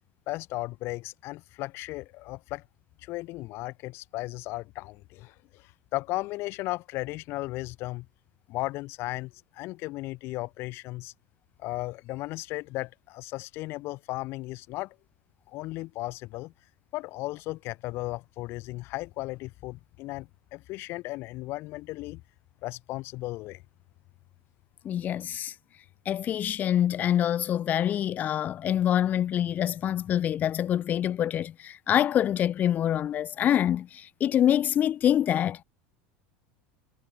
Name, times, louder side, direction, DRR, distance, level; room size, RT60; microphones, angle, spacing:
voice 1, 0.3-2.6 3.0-8.1 8.5-11.1 11.6-14.9 15.5-16.5 16.9-22.2 22.6-23.6, left 20 dB, 50° left, 3.1 m, -35 dB
voice 2, 24.8-25.5 26.1-35.6, left 10 dB, 35° left, 2.6 m, -25 dB
supercardioid pair, 140°, 5 cm